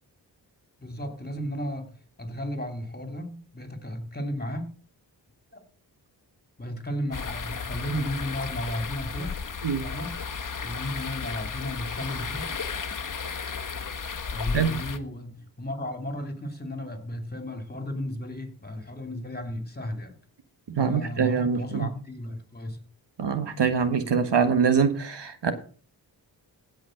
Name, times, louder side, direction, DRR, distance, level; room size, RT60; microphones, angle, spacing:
voice 1, 0.8-4.7 5.5-5.6 6.6-9.4 9.8-10.2 10.6-12.5 14.3-20.2 20.8-22.8, equal, 20° left, 3.0 m, -34 dB
sound 1, 7.1-15.0, left 5 dB, 45° left, 1.3 m, -34 dB
voice 2, 20.7-21.9 23.2-25.5, right 6 dB, 65° right, 1.5 m, -24 dB
16.0 x 5.3 x 6.5 m
cardioid pair, 50°, 45 cm